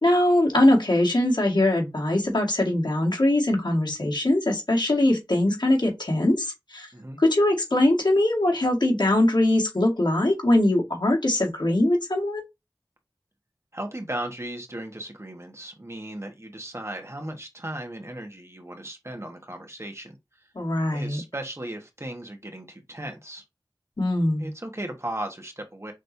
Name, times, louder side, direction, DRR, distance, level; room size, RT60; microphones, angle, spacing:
voice 1, 0.0-6.9 7.2-12.4 20.6-21.2 24.0-24.5, left 1 dB, 75° left, 2.1 m, -22 dB
voice 2, 13.7-20.2 20.9-23.4 24.4-25.9, right 1 dB, 35° right, 1.4 m, -36 dB
6.2 x 3.2 x 2.7 m
wide cardioid pair, 45°, 8 cm